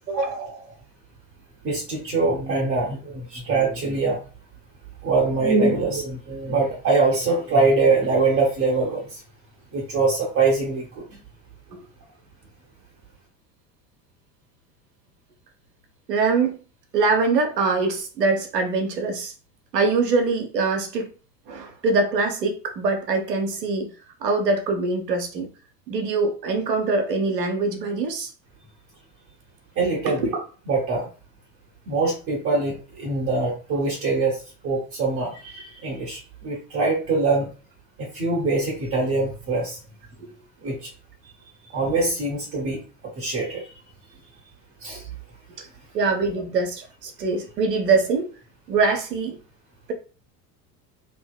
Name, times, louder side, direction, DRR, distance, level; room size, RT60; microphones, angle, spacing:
voice 1, 0.1-0.7 11.7-11.8 16.1-16.6 16.9-19.3 19.7-21.1 21.5-23.9 24.2-25.5 25.9-28.3 30.0-30.3 45.6-45.7 45.9-48.3 48.7-49.4, right 3 dB, 85° right, 4 dB, 0.8 m, -23 dB
voice 2, 1.6-4.2 5.0-9.2 9.7-11.0 29.8-30.2 30.7-31.1 31.9-37.5 38.0-39.8 40.6-40.9 41.7-42.8 43.2-43.6 44.8-45.1, right 3 dB, 30° right, -3 dB, 0.8 m, -23 dB
2.8 x 2.7 x 2.3 m, 0.36 s
figure-of-eight pair, 75°, 48 cm